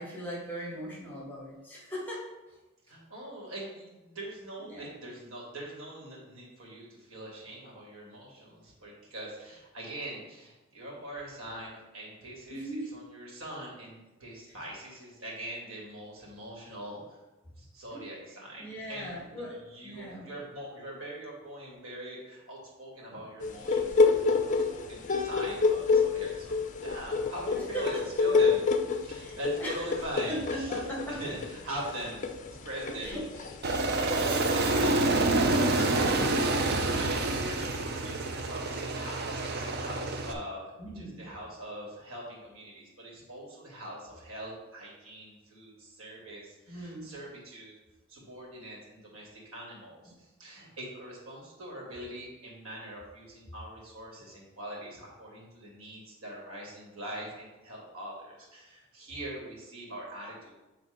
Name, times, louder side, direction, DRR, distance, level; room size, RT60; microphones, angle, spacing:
voice 1, 0.0-2.2 4.7-4.9 12.5-12.9 17.9-18.0 18.6-20.3 27.7-28.0 28.3-28.4 29.2-29.8 30.3-31.2 33.0-33.2 36.1-37.1 38.0-38.1 40.8-41.3 46.7-47.1, equal, 10° left, -4 dB, 2.0 m, -39 dB
voice 2, 2.9-17.2 17.6-28.7 29.0-30.8 31.1-32.4 32.6-33.5 33.9-35.8 36.6-47.7 48.1-60.5, right 1 dB, 85° right, -3 dB, 2.4 m, -42 dB
sound 1, 23.4-34.5, left 4 dB, 35° left, 0.5 m, -28 dB
Aircraft, 33.6-40.3, right 2 dB, 50° right, 0.7 m, -27 dB
8.2 x 3.4 x 5.2 m, 1.0 s
head